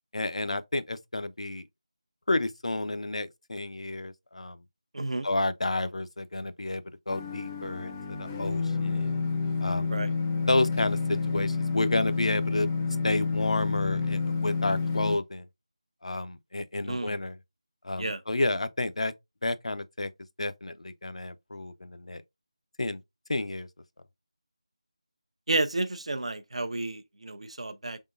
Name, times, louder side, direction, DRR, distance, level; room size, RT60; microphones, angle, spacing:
voice 1, 0.1-1.7 2.3-4.6 5.2-9.2 9.6-10.0 10.5-12.7 13.0-15.5 16.0-17.4 17.8-19.1 19.4-20.1 20.4-22.2 22.8-23.0 23.3-23.7, left 2 dB, 75° left, 0.5 m, -30 dB
voice 2, 4.9-5.3 9.9-10.1 16.8-17.1 18.0-18.2 25.5-28.0, right 2 dB, 70° right, 0.6 m, -31 dB
sound 1, 7.1-15.2, left 4 dB, 15° left, 0.5 m, -29 dB
3.6 x 3.5 x 2.5 m
figure-of-eight pair, 170°, 3 cm